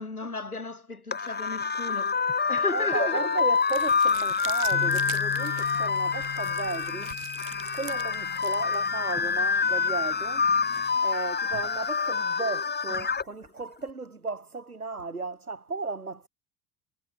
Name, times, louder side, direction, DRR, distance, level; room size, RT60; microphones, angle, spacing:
voice 1, 0.0-3.3 5.5-5.7, left 3 dB, 90° left, 4.9 m, -34 dB
sound 1, 1.1-13.2, left 5 dB, 25° left, 5.4 m, -27 dB
voice 2, 2.7-7.2 7.7-10.5 11.0-16.3, right 3 dB, 85° right, 7.2 m, -35 dB
sound 2, 3.5-12.1, right 27 dB, 55° right, 7.5 m, -46 dB
Bass guitar, 4.7-11.0, left 13 dB, 45° left, 6.3 m, -42 dB
figure-of-eight pair, 65°, 43 cm